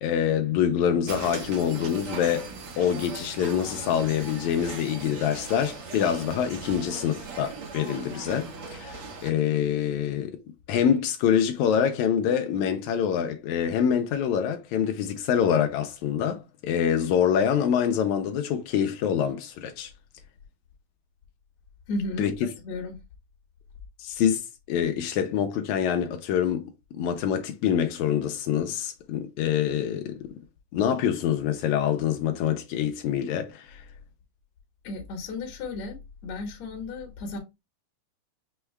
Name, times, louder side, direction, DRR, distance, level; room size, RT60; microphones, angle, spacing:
voice 1, 0.0-2.5 2.8-10.4 10.7-19.9 22.2-22.3 24.0-24.4 24.7-30.3 30.7-33.9, left 8 dB, 80° left, 1.7 m, -25 dB
sound 1, 1.1-9.3, right 4 dB, 60° right, 1.5 m, -39 dB
voice 2, 21.9-22.3 22.6-23.0 34.8-36.0 36.2-37.4, left 3 dB, 60° left, 2.1 m, -33 dB
6.2 x 2.3 x 3.2 m
omnidirectional pair, 3.9 m